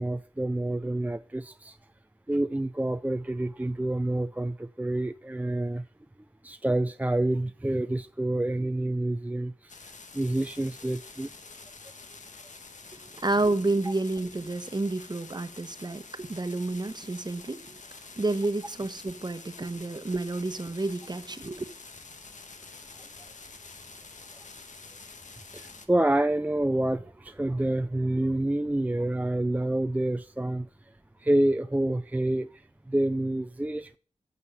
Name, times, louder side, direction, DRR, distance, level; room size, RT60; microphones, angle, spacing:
voice 1, 0.0-1.8 2.3-5.8 6.4-9.7 10.1-11.3 25.5-30.7 31.2-32.5 32.9-34.0, right 1 dB, 10° right, 0.5 m, -28 dB
sound 1, 9.7-25.9, left 4 dB, 75° left, 1.6 m, -48 dB
voice 2, 12.9-21.6, right 2 dB, 35° right, 1.2 m, -30 dB
14.5 x 6.6 x 7.1 m
wide cardioid pair, 60°, 13 cm